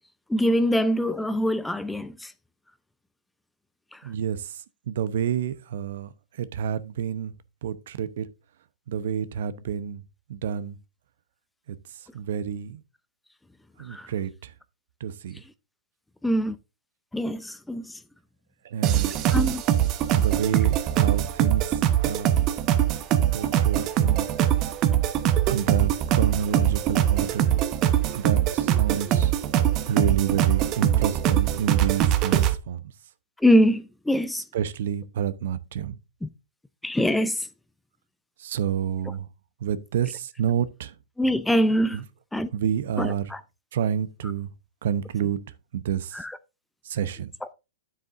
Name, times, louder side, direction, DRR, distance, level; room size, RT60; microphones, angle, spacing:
voice 1, 0.3-2.3 3.9-4.0 13.9-14.1 16.2-16.6 17.1-18.0 19.3-19.6 33.4-34.4 36.2-36.3 36.8-37.5 41.2-42.0 42.3-42.5 43.0-43.4 46.1-46.4, equal, 5° left, 0.5 m, -23 dB
voice 2, 4.0-6.1 6.4-7.3 7.6-8.3 8.9-10.0 10.3-10.8 11.7-11.8 12.1-12.8 13.8-14.5 15.0-15.4 18.6-19.1 20.1-22.4 23.3-24.3 25.5-27.5 28.1-29.3 29.8-32.9 34.5-36.0 38.4-39.3 39.6-40.9 41.9-42.0 42.5-43.3 43.7-44.5 44.8-45.4 45.7-46.2 46.8-47.3, right 8 dB, 65° right, 0.8 m, -29 dB
sound 1, 18.8-32.5, right 11 dB, 35° right, 1.0 m, -22 dB
9.7 x 7.6 x 2.5 m
hypercardioid pair, 115°, 0 cm